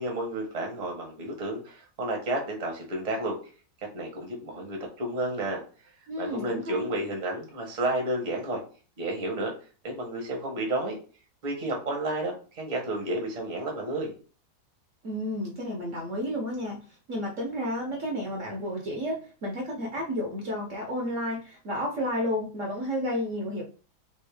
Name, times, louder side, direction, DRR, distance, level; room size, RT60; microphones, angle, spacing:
voice 1, 0.0-3.4 3.9-5.9 6.2-8.6 9.0-9.5 9.8-11.0 11.4-14.1, right 1 dB, 30° right, 1 dB, 0.9 m, -31 dB
voice 2, 6.1-6.9 15.0-16.8 17.1-23.6, equal, 55° right, 0 dB, 1.0 m, -31 dB
3.4 x 2.6 x 3.4 m, 0.38 s
omnidirectional pair, 1.8 m